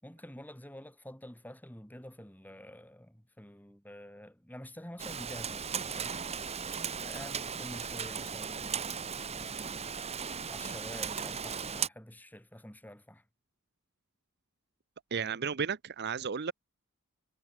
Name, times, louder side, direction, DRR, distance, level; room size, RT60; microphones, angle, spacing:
voice 1, 0.0-6.2 7.0-9.9 10.2-13.3 15.1-15.4, left 1 dB, 10° left, 3.9 m, -48 dB
Rain, 5.0-11.9, right 6 dB, 30° right, 1.2 m, -37 dB
voice 2, 15.1-16.5, right 6 dB, 50° right, 0.7 m, -33 dB
head